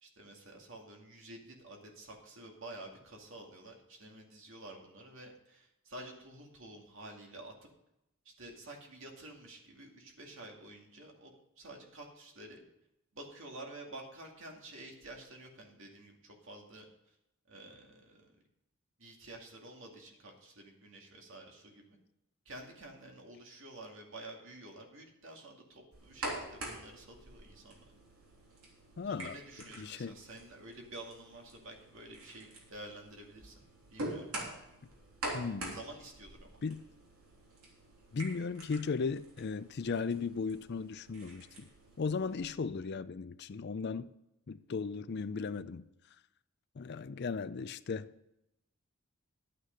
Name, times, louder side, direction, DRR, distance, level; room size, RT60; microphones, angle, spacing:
voice 1, 0.0-7.7 8.2-11.3 11.6-12.6 13.1-17.2 17.5-18.3 19.0-22.0 22.5-27.8 29.0-33.6 33.9-34.3 35.7-36.6, right 2 dB, 60° right, 2.3 m, -50 dB
sound 1, 25.9-42.4, right 2 dB, 75° right, 3.4 m, -46 dB
voice 2, 29.0-29.3 29.8-30.1 35.3-35.8 36.6-36.8 38.1-41.7 42.0-44.1 44.5-45.9 46.8-48.1, left 5 dB, 50° left, 0.4 m, -36 dB
11.5 x 8.9 x 5.2 m
head